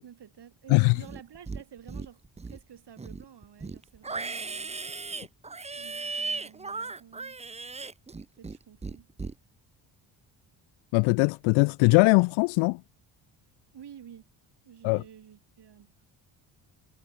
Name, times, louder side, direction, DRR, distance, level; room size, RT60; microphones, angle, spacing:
voice 1, 0.0-2.2 2.5-4.8 5.7-7.4 8.3-9.1 13.7-14.3 14.6-16.1, right 9 dB, 60° right, 6.8 m, -50 dB
Livestock farm animals working animals, 1.0-1.6 1.9-2.6 3.0-8.6 8.8-9.3, right 4 dB, 15° right, 0.7 m, -36 dB
voice 2, 10.9-12.8 14.8-15.0, left 29 dB, 85° left, 0.7 m, -21 dB
supercardioid pair, 65°, 46 cm